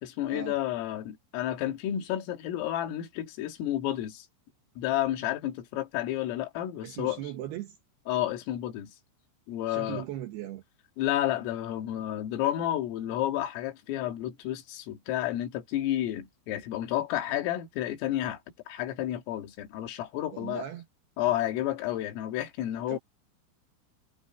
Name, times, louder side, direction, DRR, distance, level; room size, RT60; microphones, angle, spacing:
voice 1, 0.0-4.3 4.8-7.2 8.1-8.9 9.5-10.0 11.0-18.4 18.7-20.6 21.2-23.0, left 13 dB, 80° left, 4.6 m, -31 dB
voice 2, 6.8-7.8 9.7-10.6 20.3-20.9 22.9-23.0, right 12 dB, 70° right, 2.6 m, -38 dB
omnidirectional pair, 5.9 m